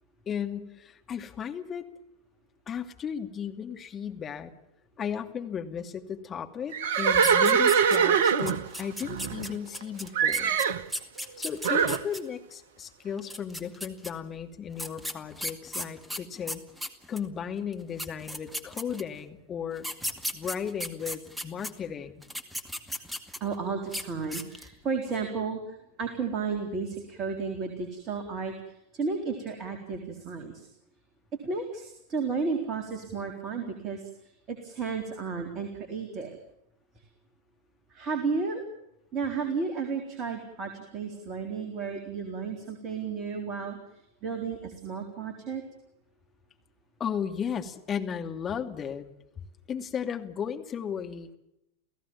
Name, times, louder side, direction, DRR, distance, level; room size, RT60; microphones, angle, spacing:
voice 1, 0.3-1.9 2.7-4.5 5.0-10.6 11.4-16.6 17.1-19.9 20.3-22.2 47.0-49.1 49.7-51.4, left 7 dB, 25° left, 5 dB, 2.6 m, -35 dB
Livestock farm animals working animals, 6.7-9.8 10.1-10.8 11.6-12.0, right 7 dB, 55° right, 1.3 m, -23 dB
sound 1, 7.1-8.2 8.5-12.2 13.2-14.1 14.8-17.3 17.7-17.8 18.0-19.2 19.8-21.7 22.2-23.5 23.9-24.0 24.3-24.7, equal, 5° right, 2.3 m, -35 dB
voice 2, 23.4-30.7 31.4-36.4 37.0-37.1 37.9-38.6 39.1-43.8 44.2-45.6, right 5 dB, 30° right, 5 dB, 4.1 m, -33 dB
29.5 x 17.0 x 7.3 m, 0.83 s
figure-of-eight pair, 90°, 0 cm